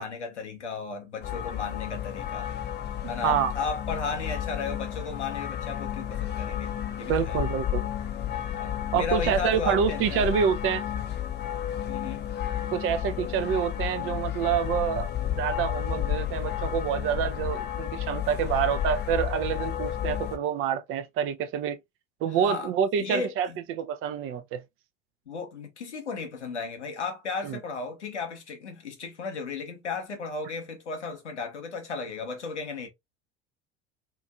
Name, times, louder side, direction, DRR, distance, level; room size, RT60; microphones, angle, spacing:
voice 1, 0.0-2.5 3.1-7.4 8.5-10.3 11.9-12.2 22.3-22.7 23.0-23.6 25.3-32.9, left 5 dB, 85° left, 0.8 m, -35 dB
sound 1, 1.2-20.4, left 11 dB, 30° left, 0.6 m, -32 dB
voice 2, 7.0-7.8 8.9-10.8 12.7-21.8 22.2-24.6 27.4-27.6, right 8 dB, 40° right, 0.5 m, -27 dB
2.8 x 2.5 x 2.3 m
figure-of-eight pair, 70°, 34 cm